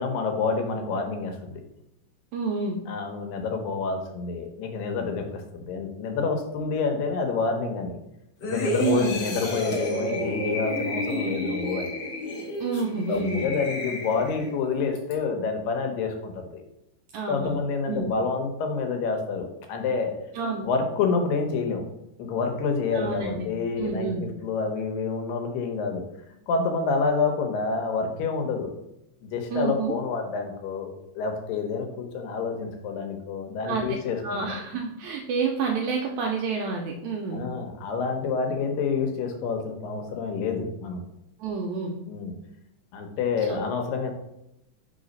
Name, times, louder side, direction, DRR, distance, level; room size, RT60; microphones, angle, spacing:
voice 1, 0.0-1.6 2.9-8.0 8.4-11.9 13.1-16.6 17.3-20.1 20.6-21.8 22.2-24.1 24.4-26.0 26.5-28.7 29.2-34.4 37.3-41.0 42.1-42.4 42.9-44.1, left 4 dB, 90° left, 4 dB, 2.6 m, -28 dB
voice 2, 2.3-2.8 8.8-9.2 12.6-13.5 17.1-17.6 17.9-18.1 20.3-20.6 22.9-23.5 23.8-24.3 29.5-29.9 33.6-33.9 34.2-37.4 41.4-42.0 43.5-43.6, right 5 dB, 90° right, 1 dB, 1.6 m, -28 dB
sound 1, 8.4-14.5 15.0-15.1, left 1 dB, 70° left, 1.0 m, -31 dB
4.7 x 3.9 x 5.2 m, 0.83 s
omnidirectional pair, 3.9 m